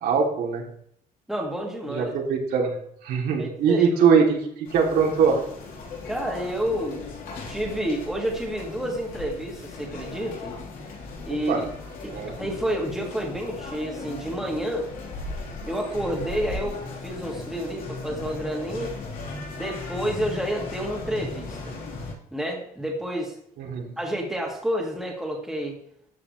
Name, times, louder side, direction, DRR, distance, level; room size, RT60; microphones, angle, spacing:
voice 1, 0.0-0.6 1.9-2.8 3.0-5.4 11.5-11.6 12.1-12.4 23.6-23.9, right 6 dB, 85° right, -1 dB, 2.9 m, -22 dB
voice 2, 1.3-2.1 3.4-3.9 6.1-7.0 7.5-10.6 11.3-11.5 12.4-14.9 15.6-16.8 17.0-18.9 19.5-21.7 22.3-23.4 24.0-25.8, equal, ahead, -1 dB, 2.2 m, -29 dB
sound 1, 4.6-22.1, left 3 dB, 70° left, 3.9 m, -37 dB
13.5 x 8.6 x 3.3 m, 0.70 s
cardioid pair, 170°, 15 cm